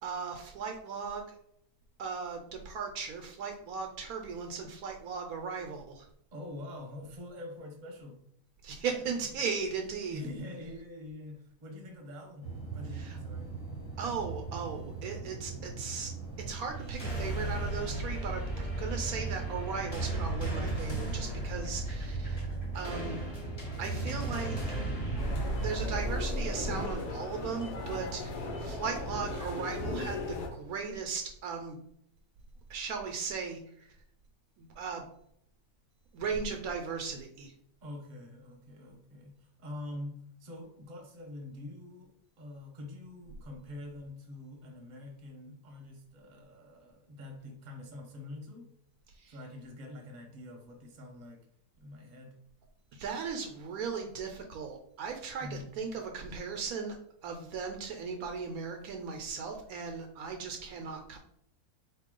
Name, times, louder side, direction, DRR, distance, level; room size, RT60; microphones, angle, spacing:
voice 1, 0.0-1.3 2.0-6.1 8.6-10.2 12.9-13.2 14.0-16.1 16.4-22.4 22.7-23.3 23.8-24.6 25.5-28.3 28.6-31.8 32.7-33.9 34.6-35.0 36.1-37.5 49.2-49.3 52.9-57.0 57.2-61.2, right 5 dB, 75° right, 4 dB, 1.0 m, -37 dB
voice 2, 6.3-8.2 10.1-13.5 28.2-28.6 37.8-48.7 49.3-51.4 51.8-52.3 55.4-55.7, left 1 dB, 35° right, 2 dB, 0.8 m, -45 dB
sound 1, 12.4-25.2, right 4 dB, 45° left, 1.3 m, -41 dB
sound 2, 16.8-27.0, right 1 dB, 25° left, 1.1 m, -35 dB
sound 3, 25.2-30.5, left 2 dB, 80° left, 1.4 m, -37 dB
4.1 x 3.0 x 3.7 m, 0.72 s
omnidirectional pair, 1.6 m